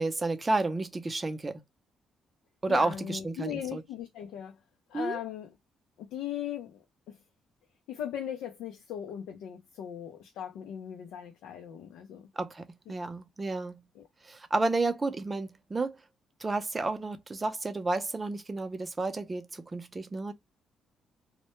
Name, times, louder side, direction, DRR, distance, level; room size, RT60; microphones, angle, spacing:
voice 1, 0.0-1.6 2.6-3.8 4.9-5.2 12.4-13.8 14.2-16.0 16.4-20.3, right 2 dB, 25° right, 0.5 m, -31 dB
voice 2, 2.7-4.5 4.9-5.5 6.0-7.2 7.9-12.3 12.9-13.0 14.0-14.1, left 10 dB, 90° left, 0.4 m, -38 dB
2.1 x 2.1 x 2.9 m
cardioid pair, 90°, 0 cm